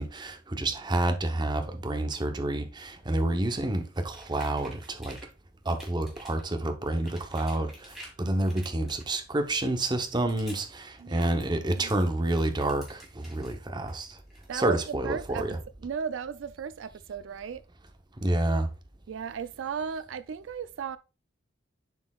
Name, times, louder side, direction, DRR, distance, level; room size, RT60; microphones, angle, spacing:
voice 1, 0.0-5.2 5.6-14.2 14.5-15.6 18.2-18.7, right 1 dB, 25° right, 0.8 m, -29 dB
sound 1, 3.9-5.3 5.7-6.4 6.8-8.2 8.5-9.4 9.9-10.7 11.0-13.6 13.9-14.8, equal, ahead, 1.9 m, -50 dB
voice 2, 11.0-11.3 11.8-11.9 14.5-15.4 15.8-17.6 19.1-21.0, right 7 dB, 80° right, 0.4 m, -35 dB
11.0 x 4.3 x 2.3 m
head